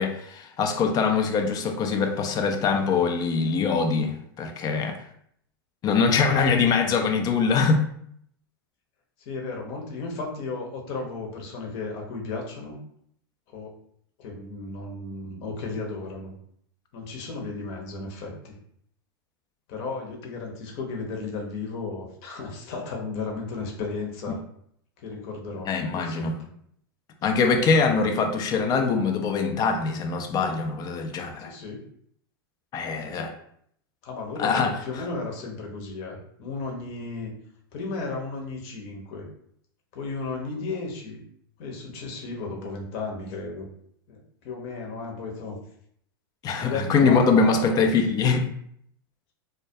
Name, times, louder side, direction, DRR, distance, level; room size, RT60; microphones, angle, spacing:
voice 1, 0.0-5.0 5.8-7.8 24.3-24.4 25.7-26.3 27.2-31.5 32.7-33.3 34.4-34.8 46.4-48.5, left 5 dB, 30° left, 0.4 m, -23 dB
voice 2, 9.2-12.8 13.5-13.7 14.2-16.3 16.9-18.6 19.7-24.4 25.0-26.5 27.9-28.1 31.5-31.8 33.0-33.3 34.0-37.3 37.7-39.3 39.9-41.2 41.6-43.6 44.1-44.2 44.4-45.6 46.6-48.1, left 3 dB, 50° left, 0.8 m, -34 dB
2.2 x 2.1 x 2.7 m
hypercardioid pair, 105°, 12 cm